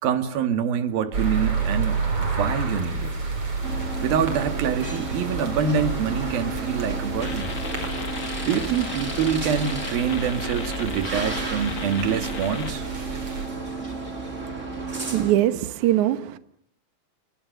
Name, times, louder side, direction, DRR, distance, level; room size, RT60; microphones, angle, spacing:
voice 1, 0.0-3.2 4.0-7.5 8.5-12.9, right 7 dB, 85° right, 3.8 m, -26 dB
sound 1, 1.1-13.5, right 4 dB, 40° right, 6.2 m, -30 dB
sound 2, 3.6-15.3, right 3 dB, 20° right, 4.2 m, -33 dB
sound 3, 7.2-12.7, left 5 dB, 40° left, 1.4 m, -37 dB
voice 2, 14.8-16.4, right 13 dB, 65° right, 2.5 m, -23 dB
29.5 x 24.0 x 6.7 m
omnidirectional pair, 4.1 m